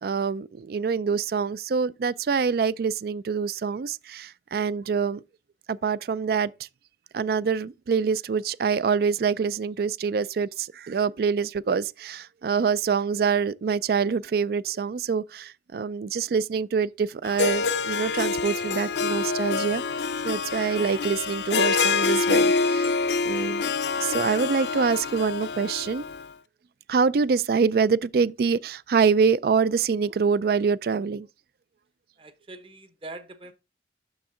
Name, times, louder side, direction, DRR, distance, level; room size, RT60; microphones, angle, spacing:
voice 1, 0.0-5.2 5.7-6.5 7.1-19.8 20.2-22.9 23.2-23.6 24.0-26.0 26.9-31.3, right 5 dB, 55° right, 0.3 m, -25 dB
Harp, 17.2-26.3, left 4 dB, 70° left, 0.5 m, -26 dB
voice 2, 32.2-33.5, right 2 dB, 30° right, 0.9 m, -42 dB
7.1 x 6.3 x 3.7 m
head